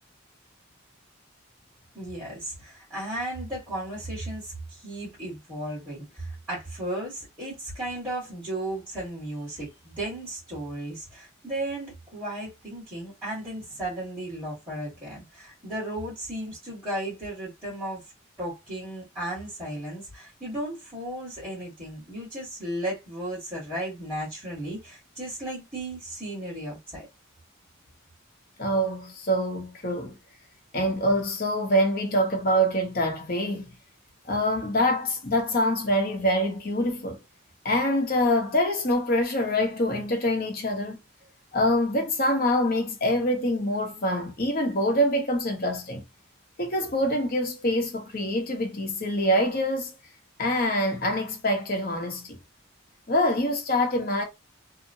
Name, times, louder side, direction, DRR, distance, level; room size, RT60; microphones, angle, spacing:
voice 1, 1.9-18.0 18.4-27.1, right 1 dB, 10° right, 1.4 m, -35 dB
voice 2, 28.6-30.2 30.7-33.7 34.3-37.2 37.6-41.0 41.5-46.0 46.6-50.0 50.4-52.4 53.1-54.2, equal, 45° left, 0.8 m, -25 dB
2.9 x 2.1 x 2.6 m
head